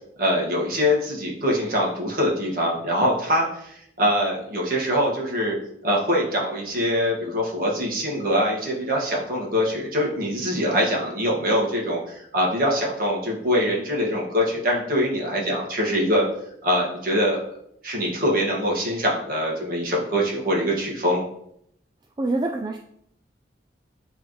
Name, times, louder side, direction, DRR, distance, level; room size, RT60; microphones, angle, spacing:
voice 1, 0.2-5.6 5.8-16.3 16.6-17.4 17.8-21.2, equal, 50° right, -3 dB, 1.7 m, -23 dB
voice 2, 22.2-22.8, right 2 dB, 25° right, 2 dB, 0.3 m, -25 dB
8.8 x 3.5 x 3.1 m, 0.73 s
head